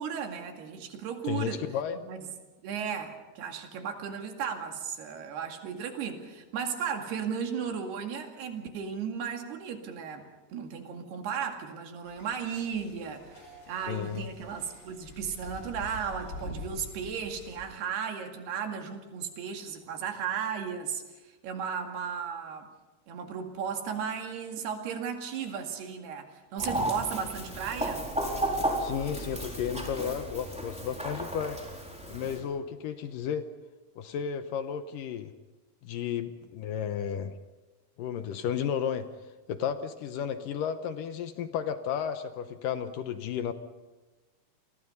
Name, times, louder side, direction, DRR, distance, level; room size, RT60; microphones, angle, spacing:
voice 1, 0.0-1.6 2.1-2.2 2.6-22.7 23.1-28.1, right 7 dB, 85° right, 4 dB, 4.3 m, -35 dB
voice 2, 1.2-2.0 13.9-14.3 28.8-31.6 32.1-33.5 34.0-35.3 35.8-37.4 38.0-39.1 39.5-43.5, left 8 dB, 75° left, 9 dB, 2.3 m, -33 dB
sound 1, 12.0-17.7, left 2 dB, 30° left, 4.1 m, -45 dB
Chicken rooster, 26.6-32.4, right 1 dB, ahead, 3.8 m, -33 dB
29.5 x 22.0 x 5.5 m, 1.2 s
omnidirectional pair, 4.5 m